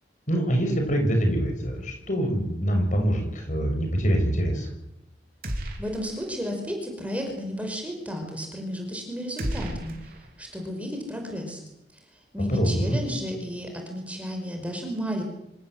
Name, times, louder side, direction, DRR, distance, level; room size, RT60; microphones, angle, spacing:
voice 1, 0.3-4.7 12.5-13.0, equal, 45° left, 4 dB, 6.6 m, -24 dB
sound 1, 5.4-6.3 6.6-6.7 9.4-10.7, right 1 dB, 50° right, 3.7 m, -34 dB
voice 2, 5.8-9.9 10.4-11.6 12.3-15.2, equal, 10° right, 2 dB, 5.3 m, -32 dB
26.5 x 18.0 x 7.9 m, 0.83 s
head